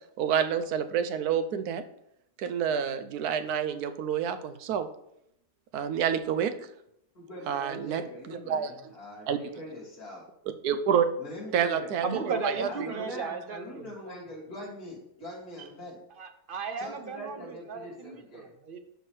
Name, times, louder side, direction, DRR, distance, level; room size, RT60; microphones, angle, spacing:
voice 1, 0.2-1.8 2.4-4.9 5.7-6.5 7.5-8.9 9.3-9.4 10.6-11.1 11.5-13.1, right 8 dB, 90° right, 9 dB, 1.2 m, -28 dB
voice 2, 7.1-10.2 11.2-16.0 16.8-18.5, left 1 dB, 80° left, -4 dB, 2.8 m, -42 dB
voice 3, 12.0-14.2 16.2-18.8, right 5 dB, 60° right, 7 dB, 0.5 m, -36 dB
12.0 x 4.6 x 3.2 m, 0.77 s
omnidirectional pair, 1.6 m